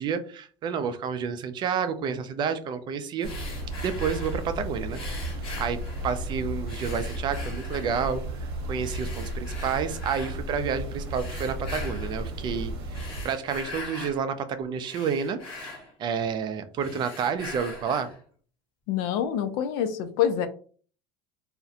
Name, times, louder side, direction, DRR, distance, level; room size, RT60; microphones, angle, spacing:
voice 1, 0.0-3.3 3.8-5.0 5.6-8.2 8.6-18.1, right 6 dB, 35° right, 10 dB, 0.3 m, -30 dB
sound 1, 3.2-4.5 4.9-6.3 6.7-8.2 8.8-10.4 11.1-12.2 12.8-14.2 14.6-16.4 16.7-18.2, left 3 dB, 40° left, 1.3 m, -42 dB
sound 2, 3.2-13.2, right 1 dB, 75° right, 0.8 m, -34 dB
voice 2, 18.9-20.5, left 9 dB, 70° left, 10 dB, 0.4 m, -26 dB
2.4 x 2.1 x 2.7 m, 0.43 s
supercardioid pair, 115°, 13 cm